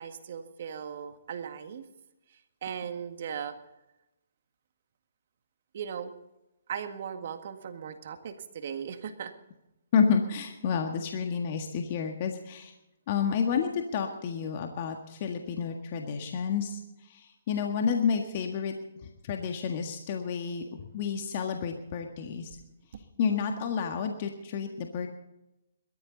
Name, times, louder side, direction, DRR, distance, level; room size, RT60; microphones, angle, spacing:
voice 1, 0.0-1.9 2.3-3.6 5.7-6.1 6.7-9.3 22.9-23.0, right 7 dB, 55° right, 8 dB, 1.8 m, -38 dB
voice 2, 9.9-12.7 13.1-16.8 17.1-17.2 17.5-18.7 19.2-20.6 20.9-22.5 23.2-25.2, left 6 dB, 40° left, 4 dB, 1.7 m, -30 dB
22.0 x 13.5 x 4.0 m, 0.92 s
hypercardioid pair, 150°, 0 cm